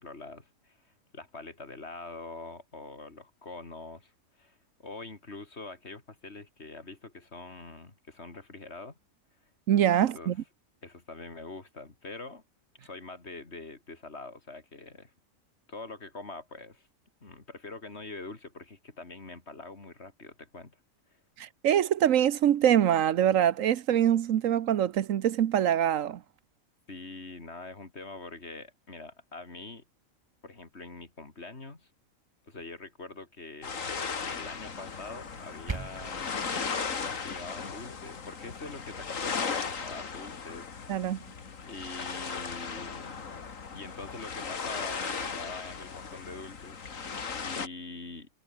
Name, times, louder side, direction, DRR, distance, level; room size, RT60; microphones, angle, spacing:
voice 1, 0.0-8.9 10.0-10.4 10.8-12.4 12.8-15.1 15.7-16.9 17.2-20.7 26.9-29.8 30.4-31.9 32.4-33.8 34.2-40.7 41.1-41.2 41.6-43.2 43.7-48.3, left 3 dB, 50° left, 3.3 m, -44 dB
voice 2, 9.7-10.4 21.4-26.2 40.9-41.2, right 10 dB, 75° right, 1.2 m, -24 dB
sound 1, 33.6-47.7, left 5 dB, 75° left, 2.3 m, -37 dB
sound 2, 35.2-36.2, right 3 dB, 25° right, 0.9 m, -38 dB
omnidirectional pair, 1.4 m